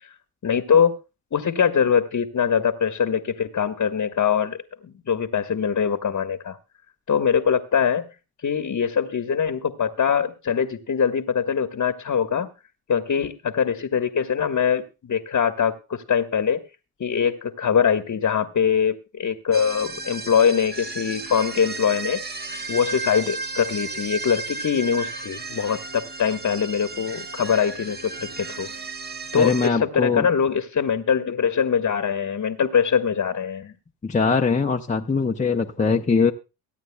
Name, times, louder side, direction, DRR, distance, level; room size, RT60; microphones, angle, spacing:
voice 1, 0.4-1.0 1.3-4.6 4.8-6.6 7.1-8.0 8.4-12.5 12.9-16.6 17.0-22.2 22.7-28.7 29.3-33.7, left 7 dB, 35° left, 8 dB, 1.2 m, -23 dB
sound 1, 19.5-29.7, right 3 dB, 20° right, 1.0 m, -34 dB
voice 2, 29.4-30.3 34.0-36.3, left 4 dB, 15° left, 2 dB, 0.8 m, -21 dB
23.5 x 9.0 x 2.2 m, 0.29 s
hypercardioid pair, 60°, 49 cm